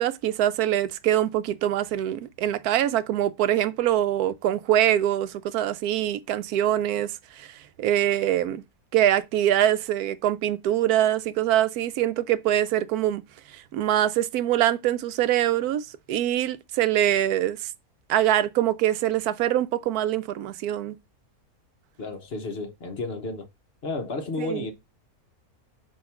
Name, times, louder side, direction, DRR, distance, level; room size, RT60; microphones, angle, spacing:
voice 1, 0.0-7.1 7.4-7.5 7.8-8.6 8.9-13.2 13.5-17.6 18.1-21.0 24.4-24.7, right 12 dB, 85° right, 1.1 m, -24 dB
voice 2, 22.0-23.5 23.8-24.7, left 3 dB, 45° left, 1.0 m, -32 dB
7.7 x 2.8 x 5.7 m
omnidirectional pair, 1.6 m